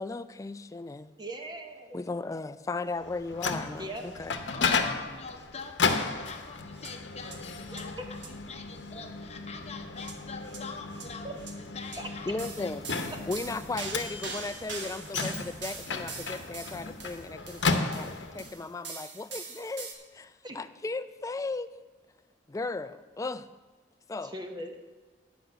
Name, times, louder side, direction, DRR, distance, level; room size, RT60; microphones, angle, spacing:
voice 1, 0.0-1.1 1.9-4.4 12.3-12.8 13.3-21.8 22.5-23.5 24.1-24.3, left 3 dB, 20° left, 13 dB, 0.3 m, -36 dB
voice 2, 1.2-2.0 3.8-4.1 7.7-8.0 11.2-11.3 12.0-12.1 15.0-15.1 20.4-20.6 24.2-24.8, right 1 dB, 25° right, 4 dB, 0.9 m, -40 dB
Microwave oven, 3.0-18.5, left 4 dB, 75° left, 0.8 m, -34 dB
voice 3, 4.5-12.8, left 4 dB, 35° left, 5 dB, 0.9 m, -44 dB
sound 1, 6.8-6.9 7.2-7.4 7.7-7.8 8.1-8.3 10.0-10.1 10.4-10.6 10.9-11.1 11.4-11.5 11.8-12.0 12.4-19.9, right 4 dB, 75° right, 1.4 m, -42 dB
10.5 x 5.2 x 7.8 m, 1.3 s
head